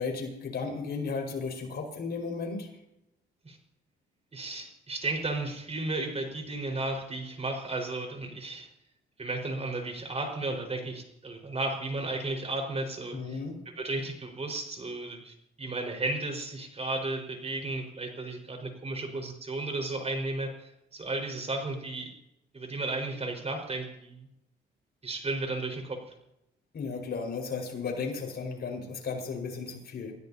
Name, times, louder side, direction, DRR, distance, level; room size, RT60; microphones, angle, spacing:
voice 1, 0.0-2.7 13.1-13.6 26.7-30.2, left 4 dB, 55° left, 2 dB, 5.1 m, -34 dB
voice 2, 4.3-8.7 9.2-13.4 13.7-22.1 22.5-24.3 25.0-26.0, right 2 dB, 30° right, 3 dB, 4.9 m, -34 dB
28.0 x 16.0 x 2.9 m, 0.85 s
cardioid pair, 90°, 20 cm